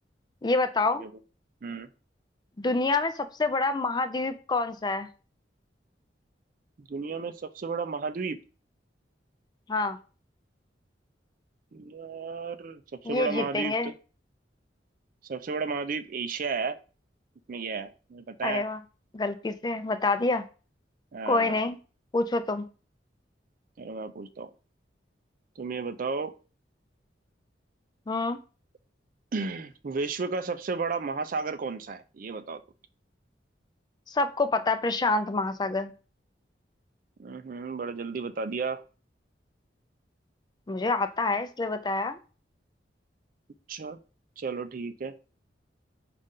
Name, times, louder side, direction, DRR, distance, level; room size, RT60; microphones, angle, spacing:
voice 1, 0.4-1.0 2.6-5.1 9.7-10.0 13.1-13.9 18.4-18.8 19.1-20.4 21.3-21.8 22.1-22.7 28.1-28.4 34.1-35.9 40.7-42.2, left 3 dB, 25° left, 9 dB, 0.4 m, -27 dB
voice 2, 6.9-8.4 11.7-13.9 15.3-16.8 17.5-18.6 21.1-21.6 23.8-24.5 25.6-26.3 29.3-32.6 37.2-38.8 43.7-44.0 44.4-45.1, right 4 dB, 50° right, 10 dB, 0.4 m, -33 dB
5.3 x 2.5 x 3.7 m, 0.34 s
head